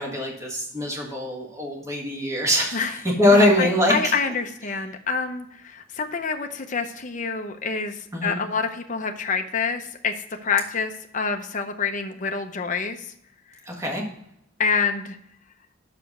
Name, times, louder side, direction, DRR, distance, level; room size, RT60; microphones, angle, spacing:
voice 1, 0.0-4.1 8.1-8.4 13.6-14.0, left 1 dB, 15° right, -1 dB, 1.5 m, -22 dB
voice 2, 3.3-10.1 10.4-13.1 14.6-15.2, left 5 dB, 35° left, 6 dB, 0.6 m, -27 dB
6.0 x 5.0 x 6.6 m, 0.72 s
head